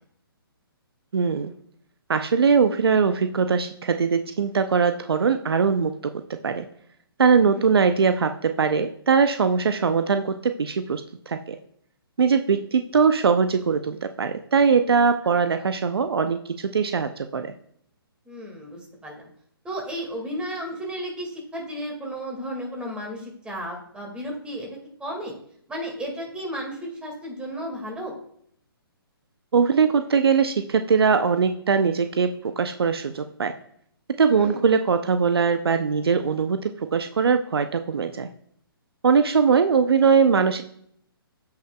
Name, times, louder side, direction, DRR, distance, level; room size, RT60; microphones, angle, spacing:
voice 1, 1.1-1.5 2.1-6.7 7.2-11.6 12.2-17.5 29.5-33.5 34.2-38.3 39.0-40.6, right 5 dB, 80° right, 9 dB, 0.6 m, -21 dB
voice 2, 18.3-19.3 19.6-25.3 25.7-28.1 34.4-34.6, equal, 10° right, 0 dB, 1.9 m, -34 dB
14.5 x 5.7 x 2.3 m, 0.67 s
hypercardioid pair, 145°, 13 cm